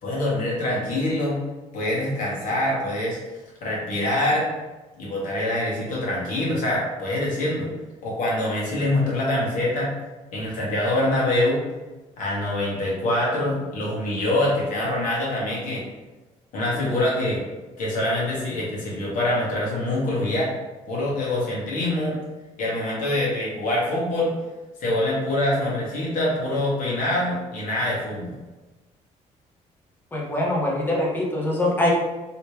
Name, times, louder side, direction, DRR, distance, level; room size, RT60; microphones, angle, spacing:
voice 1, 0.0-1.4 1.7-3.2 3.6-4.5 5.0-7.7 8.0-10.0 10.3-11.6 12.2-15.8 16.5-17.4 17.8-20.5 20.9-22.2 22.6-24.3 24.8-28.4, left 1 dB, 70° left, -5 dB, 1.4 m, -25 dB
voice 2, 30.1-31.9, left 1 dB, 15° left, -4 dB, 0.8 m, -23 dB
3.1 x 3.0 x 3.2 m, 1.2 s
cardioid pair, 140°, 14 cm